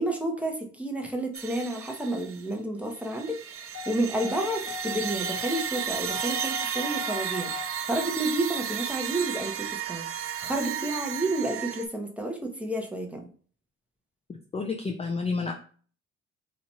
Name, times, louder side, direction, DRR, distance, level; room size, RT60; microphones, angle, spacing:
voice 1, 0.0-7.5 7.9-10.0 10.4-13.3, right 1 dB, 5° right, 1 dB, 0.8 m, -30 dB
sound 1, 1.3-2.5 2.9-11.8, right 8 dB, 45° right, 0.5 m, -34 dB
sound 2, 3.7-7.7, left 9 dB, 50° left, 1.3 m, -39 dB
voice 2, 14.5-15.5, left 4 dB, 20° left, 1 dB, 0.4 m, -29 dB
3.0 x 2.4 x 4.1 m, 0.43 s
cardioid pair, 90°, 30 cm